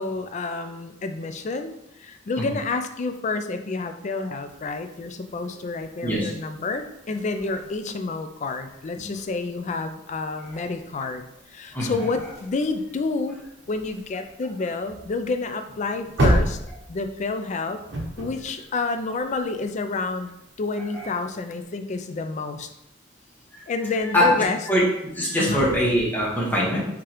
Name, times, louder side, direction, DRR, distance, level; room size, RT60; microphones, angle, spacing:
voice 1, 0.0-1.7 2.0-11.2 11.5-13.4 13.7-16.6 16.9-17.8 18.2-20.3 20.6-22.7 23.7-24.6 25.4-25.6, left 3 dB, 40° left, 8 dB, 0.4 m, -29 dB
sound 1, 4.5-21.6, right 1 dB, 60° right, 1.1 m, -34 dB
voice 2, 25.1-26.8, equal, 10° left, -6 dB, 1.3 m, -22 dB
4.7 x 3.7 x 3.0 m, 0.84 s
head